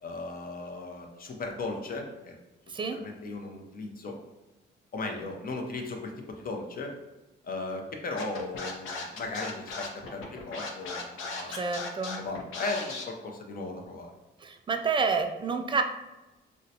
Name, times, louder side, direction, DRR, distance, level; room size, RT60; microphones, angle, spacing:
voice 1, 0.0-2.4 2.9-4.1 4.9-6.9 7.4-11.8 12.2-14.1, left 3 dB, 45° left, 2 dB, 0.6 m, -37 dB
Scratching (performance technique), 8.2-13.0, left 3 dB, 85° left, 0.6 m, -37 dB
voice 2, 11.5-12.2 14.4-15.8, right 5 dB, 25° right, 6 dB, 0.3 m, -29 dB
3.7 x 2.2 x 2.7 m, 1.1 s
cardioid pair, 90°, 20 cm